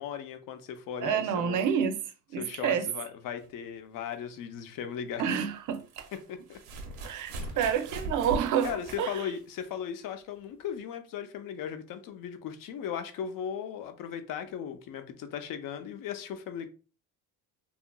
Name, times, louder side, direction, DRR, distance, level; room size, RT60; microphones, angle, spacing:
voice 1, 0.0-1.7 2.4-5.2 6.1-6.6 7.4-7.6 8.6-16.7, left 8 dB, 55° left, 0.6 m, -37 dB
voice 2, 1.0-2.0 2.3-2.9 5.2-6.1 7.0-9.1, right 8 dB, 50° right, 0.5 m, -28 dB
sound 1, 3.4-3.5 5.5-9.8 10.8-10.9, right 2 dB, 85° right, 0.7 m, -40 dB
2.8 x 2.4 x 2.2 m
cardioid pair, 100°, 40 cm